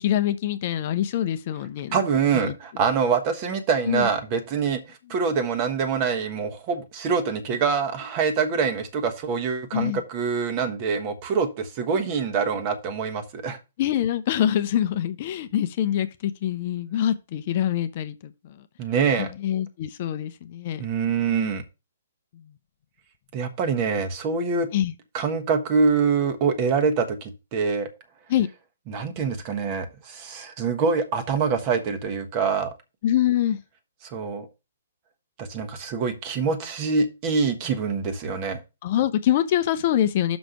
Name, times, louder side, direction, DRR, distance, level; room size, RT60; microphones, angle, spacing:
voice 1, 0.0-2.0 2.3-2.5 3.9-4.1 9.7-10.0 13.8-18.6 19.2-20.8 24.7-24.9 28.3-28.5 33.0-33.6 38.8-40.4, left 11 dB, 40° left, 0.6 m, -25 dB
voice 2, 1.9-13.6 18.8-19.3 20.8-21.6 23.3-24.7 25.1-27.9 28.9-32.7 34.0-34.5 35.4-38.6, right 5 dB, 30° right, 1.3 m, -25 dB
6.2 x 5.0 x 5.7 m
figure-of-eight pair, 120°, 0 cm